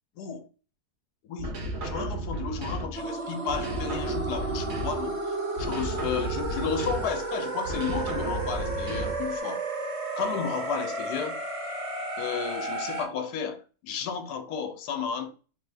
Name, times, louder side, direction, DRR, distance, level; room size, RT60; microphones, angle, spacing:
voice 1, 0.2-0.5 1.2-1.5 1.8-5.3 5.6-9.7 10.2-11.4 12.2-15.3, left 6 dB, 85° left, 1.1 m, -33 dB
sound 1, 1.4-3.1 3.5-5.2 5.6-7.3 7.6-9.4, right 1 dB, 55° right, 0.9 m, -34 dB
sound 2, 2.9-13.1, right 2 dB, 30° right, 0.7 m, -33 dB
3.3 x 2.5 x 3.3 m
omnidirectional pair, 1.7 m